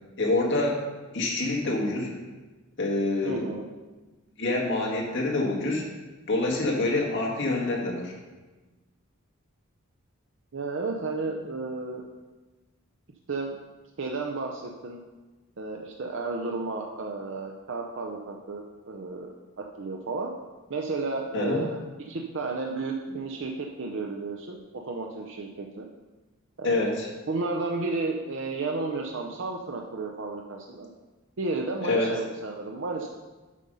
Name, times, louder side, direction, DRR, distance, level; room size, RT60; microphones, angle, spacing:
voice 1, 0.2-0.8 1.1-2.1 2.8-3.5 4.4-5.8 6.3-8.1 21.3-21.6 26.6-27.1 31.8-32.1, left 2 dB, 60° left, -2 dB, 1.9 m, -26 dB
voice 2, 3.2-3.6 10.5-12.0 13.3-13.6 14.0-15.0 15.6-20.3 20.7-25.9 26.6-26.9 27.3-30.9 31.4-33.1, right 3 dB, 60° right, 1 dB, 0.6 m, -32 dB
8.4 x 5.4 x 5.4 m, 1.2 s
head